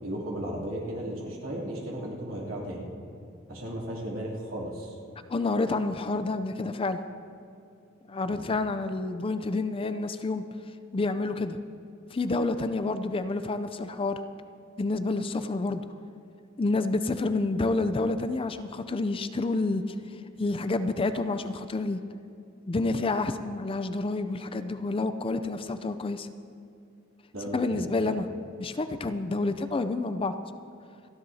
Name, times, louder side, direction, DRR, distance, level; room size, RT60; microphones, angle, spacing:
voice 1, 0.0-2.9 3.5-4.9 8.3-8.4 27.3-28.1, right 1 dB, 80° right, -4 dB, 3.0 m, -35 dB
voice 2, 5.3-7.0 8.1-10.4 10.9-11.6 12.1-14.2 14.8-15.9 16.6-19.8 20.4-22.0 22.7-26.3 27.5-28.3 28.6-30.3, left 3 dB, 25° left, 10 dB, 0.4 m, -29 dB
28.5 x 10.5 x 2.8 m, 2.5 s
head